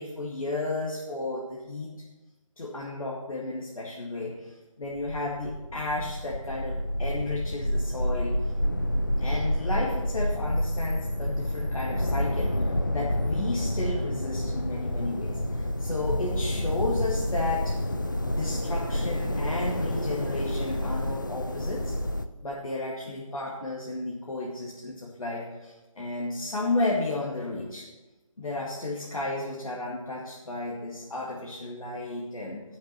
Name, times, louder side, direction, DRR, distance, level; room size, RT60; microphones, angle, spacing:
voice 1, 0.0-1.9 2.6-8.4 9.2-17.8 18.2-22.0 22.4-27.9 28.4-32.6, left 2 dB, 70° left, -4 dB, 2.2 m, -33 dB
sound 1, 4.8-22.3, left 1 dB, 35° left, 0.5 m, -29 dB
11.0 x 6.6 x 7.3 m, 1.1 s
figure-of-eight pair, 180°, 18 cm